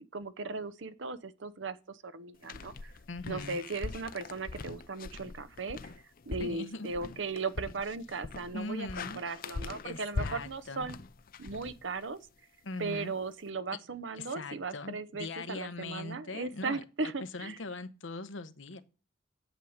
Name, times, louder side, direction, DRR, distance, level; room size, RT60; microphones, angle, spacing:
voice 1, 0.1-2.9 3.3-5.9 6.3-11.0 11.4-12.2 12.8-17.6, right 4 dB, 70° right, 0.8 m, -37 dB
sound 1, 2.4-12.3, left 3 dB, 50° left, 0.6 m, -42 dB
voice 2, 3.1-3.6 6.4-6.9 8.5-9.2 9.8-10.9 12.6-13.1 14.2-16.8 17.3-18.8, left 3 dB, 90° left, 1.0 m, -41 dB
8.2 x 7.8 x 7.2 m
head